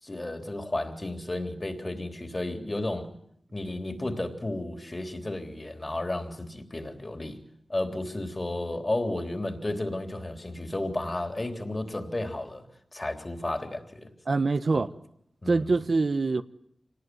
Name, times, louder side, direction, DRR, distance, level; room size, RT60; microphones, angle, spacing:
voice 1, 0.0-3.1 3.5-7.4 7.7-12.6 12.9-14.1 14.7-14.9 15.4-15.7, left 1 dB, 30° left, 3.5 m, -33 dB
voice 2, 14.3-14.9 15.5-16.4, right 3 dB, 60° right, 0.9 m, -24 dB
25.5 x 19.0 x 9.5 m
wide cardioid pair, 65°, 0 cm